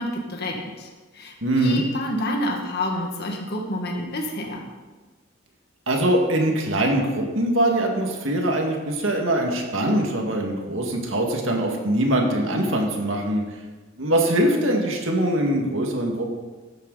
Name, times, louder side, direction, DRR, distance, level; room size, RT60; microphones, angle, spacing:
voice 1, 0.0-4.7, left 1 dB, 55° left, 0 dB, 2.0 m, -29 dB
voice 2, 1.4-1.8 5.9-13.4 14.0-16.3, right 1 dB, 70° right, 1 dB, 2.1 m, -22 dB
14.0 x 12.0 x 4.1 m, 1.3 s
head